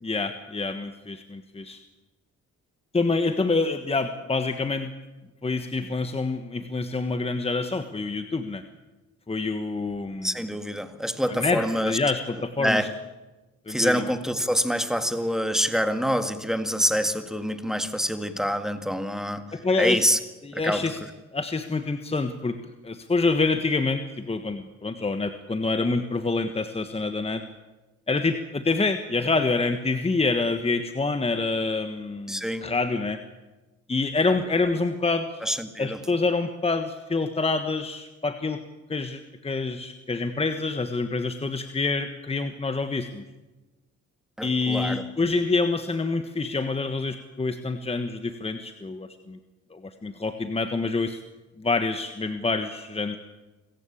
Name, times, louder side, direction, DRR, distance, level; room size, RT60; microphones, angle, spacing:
voice 1, 0.0-1.8 2.9-4.9 5.4-8.6 9.3-10.3 11.3-12.9 13.7-14.1 19.5-20.0 20.4-21.0 21.3-22.6 22.8-27.4 28.1-33.2 33.9-35.3 35.8-38.6 38.9-43.2 44.4-49.4 49.7-51.2 51.6-53.2, left 3 dB, 20° left, 8 dB, 1.4 m, -27 dB
voice 2, 10.2-12.0 12.6-12.9 13.7-19.5 19.8-20.2 20.5-21.1 32.3-32.7 35.4-36.0 44.4-45.0, equal, ahead, 9 dB, 1.9 m, -26 dB
26.0 x 15.0 x 8.6 m, 1.1 s
cardioid pair, 90°, 30 cm